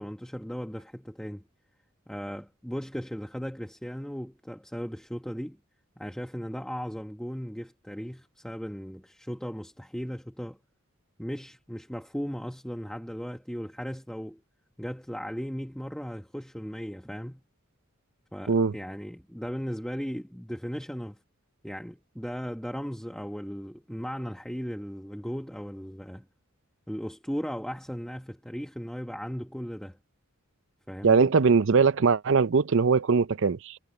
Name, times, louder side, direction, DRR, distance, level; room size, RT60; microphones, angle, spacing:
voice 1, 0.0-1.4 2.1-5.6 6.0-10.6 11.2-14.4 14.8-17.4 18.3-21.2 21.6-26.3 26.9-30.0 30.9-31.3, equal, 5° left, 1.2 m, -37 dB
voice 2, 31.0-33.8, right 5 dB, 55° right, 0.5 m, -21 dB
head